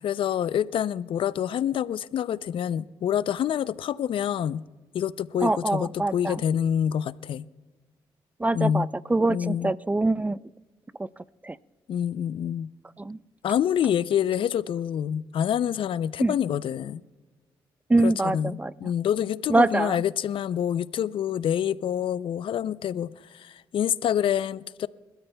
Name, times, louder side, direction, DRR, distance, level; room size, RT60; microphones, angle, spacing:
voice 1, 0.0-4.6 4.9-7.5 8.5-8.9 9.3-9.7 11.9-12.7 13.4-17.0 18.0-24.9, left 9 dB, 65° left, 0.5 m, -27 dB
voice 2, 5.4-6.4 8.4-10.4 11.0-11.1 11.4-11.6 13.0-13.2 16.2-16.4 17.9-18.7 19.5-20.0, right 2 dB, 15° right, 0.4 m, -24 dB
30.0 x 13.0 x 2.3 m
supercardioid pair, 65°, 9 cm